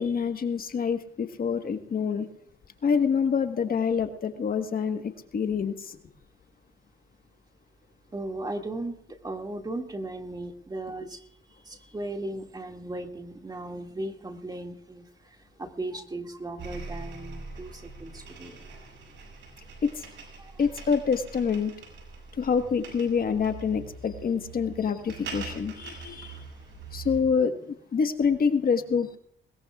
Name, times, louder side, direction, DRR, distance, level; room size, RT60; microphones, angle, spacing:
voice 1, 0.0-2.3 2.8-6.0 19.8-20.0 20.6-21.7 22.3-26.4 26.9-29.1, left 6 dB, 45° left, 7 dB, 1.4 m, -26 dB
voice 2, 8.1-11.3 11.6-15.1 15.6-18.6 20.4-20.5, right 2 dB, 20° right, 3 dB, 2.2 m, -36 dB
sound 1, 16.6-27.2, right 4 dB, 75° right, 6.7 m, -43 dB
21.0 x 20.5 x 2.4 m, 0.69 s
cardioid pair, 90°, 20 cm